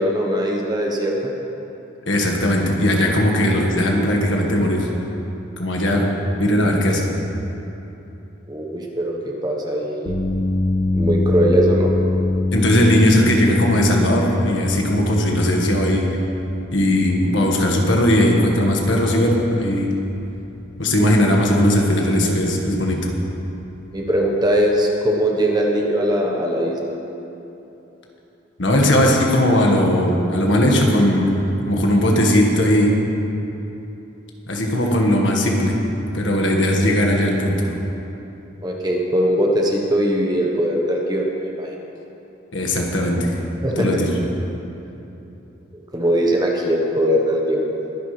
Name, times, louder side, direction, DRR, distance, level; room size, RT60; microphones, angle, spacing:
voice 1, 0.0-1.3 8.5-10.1 10.9-11.9 23.9-26.8 38.6-41.7 43.6-44.0 45.9-47.6, equal, 20° right, -1 dB, 1.2 m, -20 dB
voice 2, 2.1-4.9 5.6-6.1 6.4-7.1 12.5-16.1 16.7-19.9 20.8-23.1 28.6-31.3 31.7-32.9 34.5-35.8 36.1-37.6 42.5-43.4 43.8-44.1, left 1 dB, 65° left, 0 dB, 1.8 m, -18 dB
sound 1, 10.0-24.3, left 2 dB, 90° left, 2.6 m, -26 dB
22.0 x 10.0 x 3.4 m, 3.0 s
head